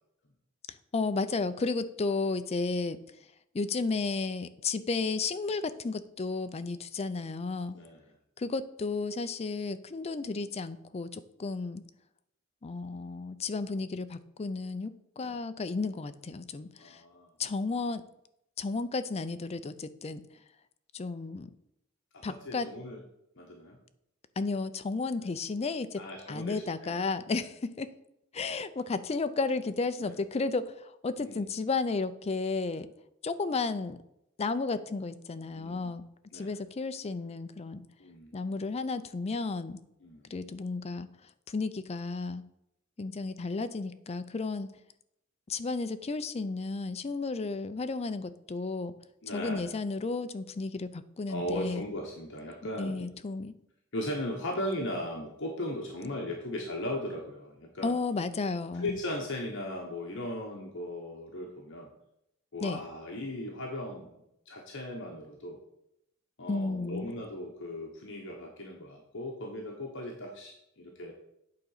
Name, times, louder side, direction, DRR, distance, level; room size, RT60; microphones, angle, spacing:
voice 1, 0.9-3.0 3.5-7.7 8.4-11.8 12.6-17.0 17.4-18.0 18.6-20.2 20.9-21.5 22.2-22.7 24.4-26.0 26.3-27.9 28.3-32.9 33.2-34.0 34.4-36.0 36.3-37.8 38.3-39.8 40.3-41.1 41.5-42.4 43.0-44.7 45.5-48.9 49.3-51.8 52.8-53.5 57.8-59.0 62.6-62.8 66.5-67.1, left 3 dB, 30° left, 11 dB, 0.4 m, -33 dB
voice 2, 7.7-8.0 15.2-15.4 16.8-17.3 22.1-23.0 23.4-23.8 25.2-25.3 26.0-27.0 27.3-27.4 30.0-30.1 31.2-31.4 35.5-35.9 36.3-36.5 38.0-38.3 40.0-40.3 49.2-49.7 51.3-53.1 53.9-57.9 58.7-61.9 62.5-64.1 64.5-65.6 66.4-71.1, left 1 dB, 60° left, -1 dB, 1.2 m, -37 dB
8.5 x 3.9 x 6.5 m, 0.80 s
head